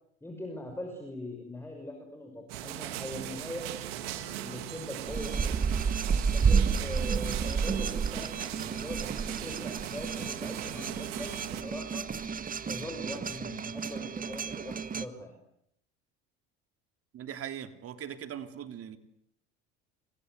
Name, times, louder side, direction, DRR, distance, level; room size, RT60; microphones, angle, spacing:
voice 1, 0.2-3.7 4.3-5.6 6.3-8.3 8.6-12.1 12.6-15.3, left 1 dB, 10° left, 3 dB, 6.3 m, -42 dB
sound 1, 2.5-11.6, right 12 dB, 85° right, 3.0 m, -39 dB
sound 2, 5.1-15.1, right 6 dB, 30° right, 1.7 m, -31 dB
voice 2, 17.1-19.0, right 9 dB, 50° right, 8 dB, 3.1 m, -40 dB
29.0 x 25.5 x 8.1 m, 0.76 s
supercardioid pair, 90°, 30 cm